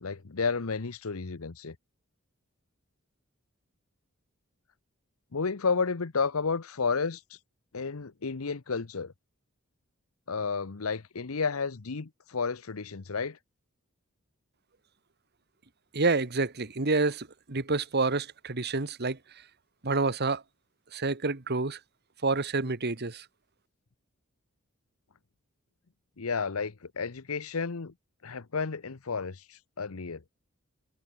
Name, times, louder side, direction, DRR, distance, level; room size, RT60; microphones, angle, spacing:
voice 1, 0.0-1.8 5.3-7.2 7.7-9.1 10.3-13.4 26.2-27.9 28.2-30.2, left 5 dB, 85° left, 0.9 m, -32 dB
voice 2, 15.9-19.2 19.8-20.4 20.9-21.8 22.2-23.2, right 3 dB, 50° right, 1.5 m, -28 dB
head